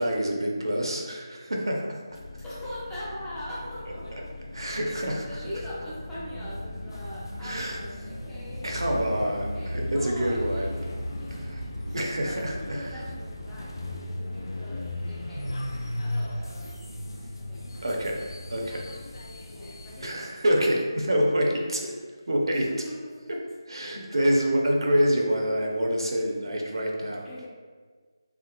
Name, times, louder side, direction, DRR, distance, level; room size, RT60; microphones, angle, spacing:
voice 1, 0.0-2.0 4.5-5.3 7.4-7.8 8.6-10.7 11.4-12.9 17.8-18.2 18.5-18.8 20.0-22.0 22.3-22.7 23.3-23.4 23.7-27.3, equal, 75° right, 0 dB, 0.6 m, -27 dB
sound 1, 2.1-20.1, left 1 dB, 65° left, 0.5 m, -36 dB
voice 2, 2.4-4.3 4.9-8.6 9.5-11.5 11.8-15.6 16.0-16.8 17.4-17.7 19.4-20.1 22.5-23.3 27.2-27.5, equal, 5° left, -11 dB, 0.4 m, -41 dB
3.6 x 2.8 x 2.2 m, 1.5 s
figure-of-eight pair, 170°, 2 cm